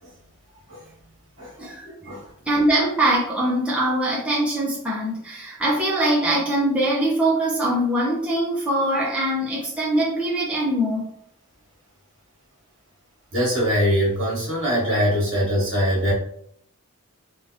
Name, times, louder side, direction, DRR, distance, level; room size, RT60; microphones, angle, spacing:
voice 1, 1.6-2.1 2.5-11.0, right 1 dB, 5° right, -7 dB, 0.8 m, -22 dB
voice 2, 13.3-16.1, equal, 55° right, -5 dB, 1.5 m, -22 dB
3.7 x 2.4 x 2.8 m, 0.68 s
head